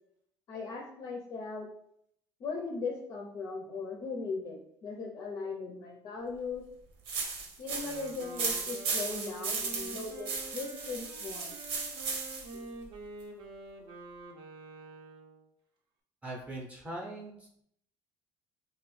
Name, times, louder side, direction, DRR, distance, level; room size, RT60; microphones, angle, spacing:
voice 1, 0.5-1.7 2.4-6.7 7.6-11.6 12.5-12.7, left 4 dB, 35° left, 0 dB, 0.5 m, -38 dB
sound 1, 7.1-12.6, right 4 dB, 80° right, 1.0 m, -36 dB
Wind instrument woodwind instrument, 7.6-15.5, right 2 dB, 55° right, 0.6 m, -47 dB
voice 2, 16.2-17.6, right 1 dB, 15° right, -2 dB, 0.6 m, -41 dB
3.8 x 2.9 x 3.1 m, 0.72 s
cardioid pair, 170°, 9 cm